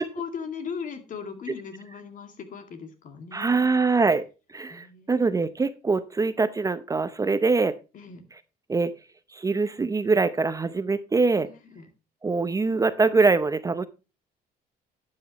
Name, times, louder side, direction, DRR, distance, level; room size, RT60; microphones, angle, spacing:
voice 1, 0.0-3.7 4.7-5.4 7.9-8.2 11.5-11.9, left 6 dB, 50° left, 7 dB, 2.2 m, -38 dB
voice 2, 3.3-4.2 4.5-7.7 8.7-8.9 9.3-11.5 12.2-13.9, right 4 dB, 20° right, 12 dB, 0.6 m, -23 dB
12.0 x 8.6 x 3.0 m, 0.31 s
cardioid pair, 110°, 17 cm